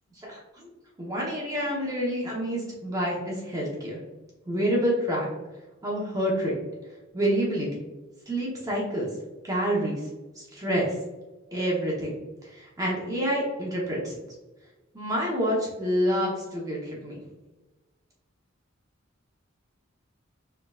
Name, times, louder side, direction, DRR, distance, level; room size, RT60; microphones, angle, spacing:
voice 1, 0.1-0.7 1.0-4.0 4.5-5.3 5.8-6.6 7.1-7.7 8.3-9.1 9.4-10.1 10.4-10.9 11.5-12.1 12.4-14.2 14.9-17.2, equal, 20° right, -4 dB, 0.9 m, -28 dB
4.5 x 3.7 x 2.4 m, 1.1 s
head